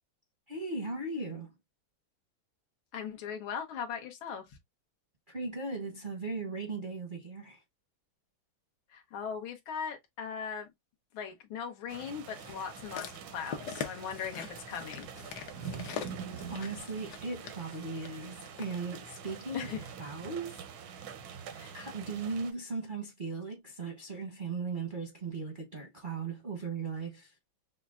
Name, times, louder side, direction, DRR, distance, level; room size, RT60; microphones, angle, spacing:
voice 1, 0.5-1.5 5.3-7.6 16.5-19.7 20.0-21.1 21.7-27.4, right 4 dB, 45° right, 0.6 m, -38 dB
voice 2, 2.9-4.4 8.9-10.7 11.1-15.1 19.5-19.8 21.5-21.7, left 7 dB, 80° left, 1.8 m, -39 dB
sound 1, 11.9-22.5, right 7 dB, 85° right, 1.6 m, -45 dB
sound 2, 12.4-18.7 19.5-19.6, left 8 dB, 65° left, 1.1 m, -43 dB
5.7 x 2.2 x 2.4 m
omnidirectional pair, 2.2 m